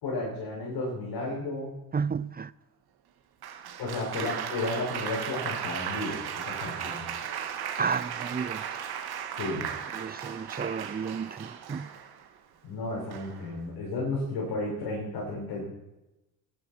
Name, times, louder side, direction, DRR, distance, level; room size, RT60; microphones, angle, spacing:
voice 1, 0.0-1.7 3.8-7.1 9.4-9.7 12.6-15.6, left 2 dB, 65° left, 6.1 m, -33 dB
voice 2, 1.9-2.5 7.8-8.6 9.9-11.9, right 6 dB, 20° right, 0.6 m, -32 dB
Applause, 3.4-12.3 13.1-13.5, right 8 dB, 60° right, 2.1 m, -36 dB
12.5 x 11.5 x 5.9 m
hypercardioid pair, 50°, 42 cm